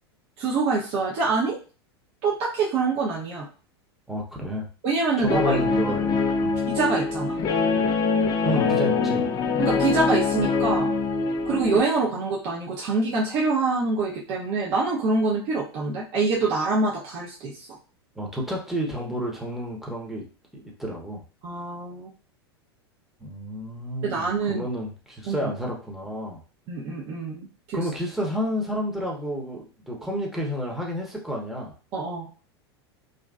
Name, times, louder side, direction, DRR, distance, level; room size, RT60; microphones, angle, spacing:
voice 1, 0.4-1.6 2.2-3.5 4.8-5.6 6.7-7.4 9.6-10.9 11.5-17.7 21.4-22.1 24.0-24.7 25.3-25.5 26.7-27.8 31.9-32.3, right 3 dB, 45° right, -4 dB, 0.8 m, -25 dB
voice 2, 4.1-4.7 5.2-6.6 8.4-9.3 18.2-20.2 20.5-21.2 23.2-26.4 27.7-31.7, equal, ahead, -2 dB, 0.9 m, -30 dB
Guitar, 5.3-11.8, left 4 dB, 25° left, 0.4 m, -24 dB
3.0 x 2.5 x 2.3 m, 0.36 s
hypercardioid pair, 90°, 14 cm